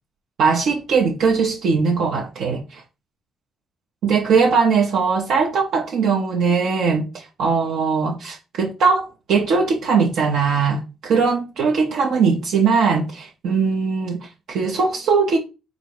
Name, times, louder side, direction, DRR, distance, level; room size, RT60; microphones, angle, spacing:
voice 1, 0.4-2.8 4.0-15.4, right 5 dB, 75° right, 0.7 m, -20 dB
4.0 x 2.6 x 4.7 m
cardioid pair, 90°, 0 cm